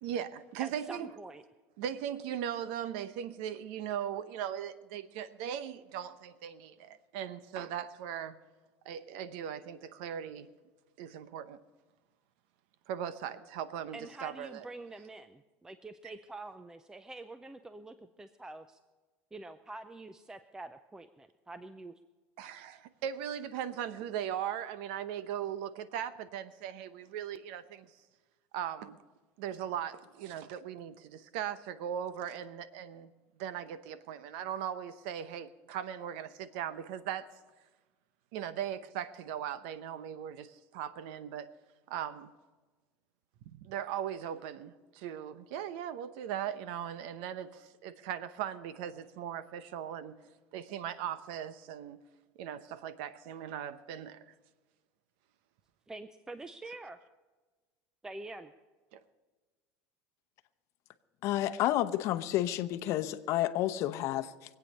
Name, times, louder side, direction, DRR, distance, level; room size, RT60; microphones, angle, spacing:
voice 1, 0.0-1.1 1.8-8.4 8.8-10.5 11.0-11.6 12.9-14.6 22.4-27.9 28.5-29.0 29.4-33.1 33.4-37.3 38.3-41.5 41.9-42.3 43.4-50.1 50.5-52.0 52.4-54.3 58.9-59.0, right 9 dB, 75° right, 14 dB, 0.8 m, -39 dB
voice 2, 0.6-1.4 13.9-18.8 19.3-21.9 55.9-57.0 58.0-58.5, right 2 dB, 10° right, 11 dB, 0.5 m, -46 dB
voice 3, 61.2-64.3, left 13 dB, 55° left, 10 dB, 0.8 m, -30 dB
24.0 x 8.6 x 5.5 m, 1.3 s
supercardioid pair, 130°, 6 cm